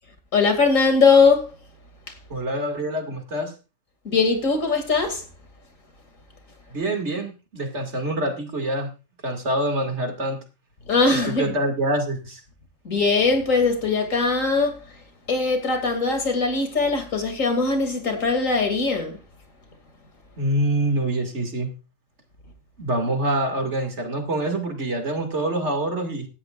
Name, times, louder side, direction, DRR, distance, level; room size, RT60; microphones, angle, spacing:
voice 1, 0.3-1.5 4.0-5.2 10.9-11.5 12.8-14.8 15.3-19.2, left 4 dB, 85° left, 3.0 m, -20 dB
voice 2, 2.3-3.5 6.7-8.9 9.2-10.4 11.1-12.4 20.4-21.7 22.8-26.3, right 1 dB, 60° right, 2.7 m, -25 dB
17.5 x 13.0 x 2.5 m
omnidirectional pair, 1.3 m